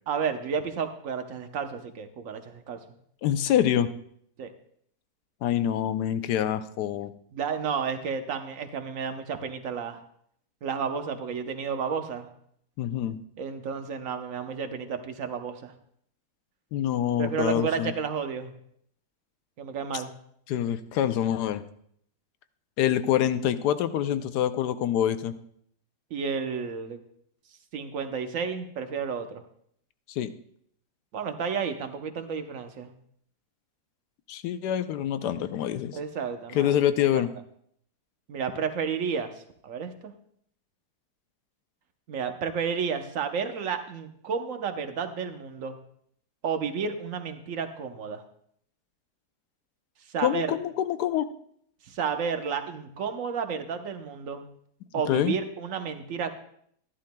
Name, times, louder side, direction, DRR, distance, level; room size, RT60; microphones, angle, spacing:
voice 1, 0.1-2.8 4.4-4.5 7.3-10.0 10.6-12.3 13.4-15.7 17.2-18.5 19.6-20.1 26.1-27.0 27.7-29.4 31.1-32.9 35.9-36.7 37.0-37.2 38.3-39.3 39.6-40.1 42.1-45.8 46.4-48.2 50.1-50.5 51.9-54.4 54.9-56.3, right 6 dB, 60° right, 7 dB, 1.1 m, -31 dB
voice 2, 3.2-3.9 5.4-7.1 12.8-13.2 16.7-17.9 19.9-20.0 20.5-21.6 22.8-25.3 30.1-30.3 34.3-36.0 36.5-37.3 50.2-51.3 55.1-55.4, left 10 dB, 80° left, 11 dB, 1.2 m, -26 dB
13.5 x 11.5 x 2.2 m, 0.67 s
omnidirectional pair, 1.7 m